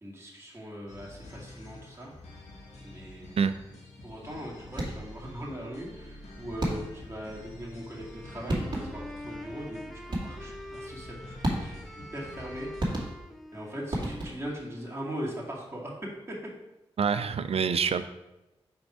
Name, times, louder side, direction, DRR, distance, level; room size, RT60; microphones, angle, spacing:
voice 1, 0.0-2.1 2.8-3.4 4.0-12.7 13.5-15.9, equal, 25° right, -5 dB, 2.2 m, -40 dB
sound 1, 0.9-13.1, left 1 dB, 80° left, 1.4 m, -47 dB
sound 2, 4.7-5.2 6.6-7.1 8.1-8.2 8.5-9.1 10.1-10.6 11.4-12.0 12.8-13.5 13.9-14.6, right 1 dB, 45° right, 2.0 m, -32 dB
Wind instrument woodwind instrument, 8.0-15.8, equal, ahead, 0.6 m, -46 dB
voice 2, 17.0-18.0, right 6 dB, 65° right, 12 dB, 0.5 m, -26 dB
5.0 x 4.6 x 4.9 m, 0.97 s
cardioid pair, 45°, 11 cm